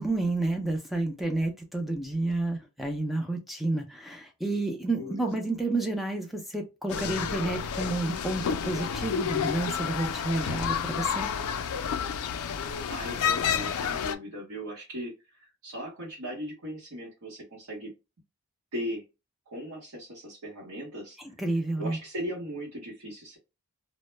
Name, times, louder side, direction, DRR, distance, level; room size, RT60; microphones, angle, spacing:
voice 1, 0.0-11.3 21.4-22.0, right 2 dB, ahead, 0.4 m, -30 dB
sound 1, 6.9-14.1, left 7 dB, 80° left, 0.3 m, -30 dB
voice 2, 12.9-15.1 15.4-17.9 18.7-19.0 19.5-21.2 21.8-23.4, equal, 80° right, 0.9 m, -38 dB
2.0 x 2.0 x 3.2 m
head